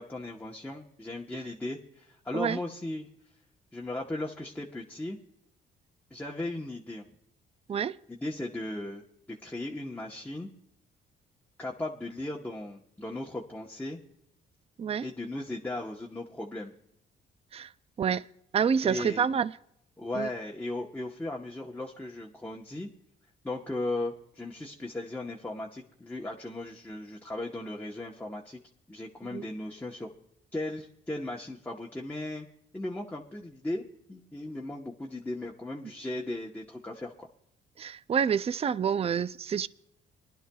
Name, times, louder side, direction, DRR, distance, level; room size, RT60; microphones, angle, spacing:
voice 1, 0.0-3.4 3.7-5.2 6.1-7.1 8.1-10.5 11.6-14.0 15.0-16.7 18.8-19.3 20.0-22.9 23.4-28.6 28.9-30.1 30.5-32.5 32.7-37.3, left 2 dB, 10° left, 1.0 m, -37 dB
voice 2, 18.5-19.5 20.2-20.3 29.3-29.4 37.8-39.7, right 7 dB, 30° right, 0.4 m, -27 dB
22.5 x 11.5 x 2.3 m
cardioid pair, 90°, 20 cm